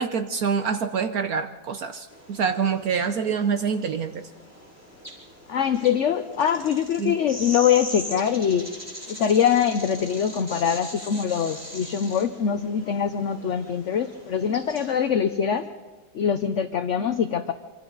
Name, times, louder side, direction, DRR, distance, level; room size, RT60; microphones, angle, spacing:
voice 1, 0.0-4.3 7.0-7.2, right 6 dB, 60° right, 8 dB, 1.1 m, -26 dB
sound 1, 2.1-15.1, equal, 10° right, 4.3 m, -41 dB
voice 2, 5.5-8.7 9.1-15.7 16.1-17.5, left 8 dB, 60° left, 9 dB, 0.8 m, -23 dB
26.0 x 25.5 x 4.0 m, 1.3 s
omnidirectional pair, 2.0 m